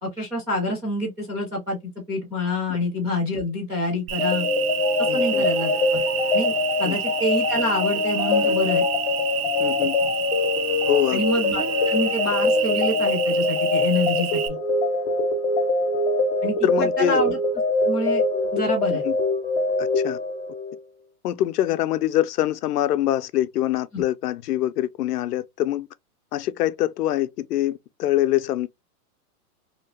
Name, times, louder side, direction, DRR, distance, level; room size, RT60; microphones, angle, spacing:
voice 1, 0.0-1.8 2.1-4.5 5.1-6.0 6.3-8.9 11.1-14.6 16.4-17.4 17.8-18.2 18.5-19.0 23.9-24.0, left 1 dB, 5° right, 0.4 m, -27 dB
Cricket, 4.1-14.5, right 10 dB, 70° right, 0.6 m, -29 dB
sound 1, 4.2-20.8, left 3 dB, 35° left, 0.6 m, -23 dB
voice 2, 5.1-5.4 6.8-7.0 9.6-10.0 10.9-11.2 16.6-17.2 18.9-19.2 19.8-20.2 21.2-25.9 26.3-28.7, left 13 dB, 85° left, 0.6 m, -24 dB
2.9 x 2.3 x 2.8 m
hypercardioid pair, 165°, 45 cm